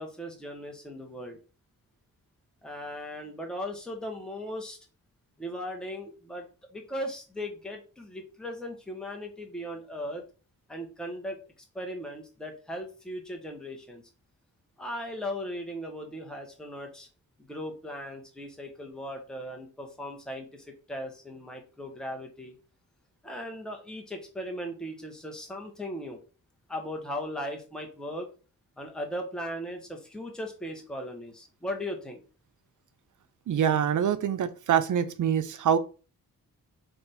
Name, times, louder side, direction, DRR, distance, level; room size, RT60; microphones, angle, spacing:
voice 1, 0.0-1.4 2.6-4.8 5.4-6.5 6.7-10.2 10.7-11.4 11.7-14.0 14.8-17.1 17.4-22.5 23.2-26.2 26.7-28.3 28.8-32.2, equal, ahead, 0.9 m, -38 dB
voice 2, 33.5-35.8, right 9 dB, 60° right, 0.5 m, -25 dB
3.4 x 2.4 x 4.1 m
cardioid pair, 75°, 34 cm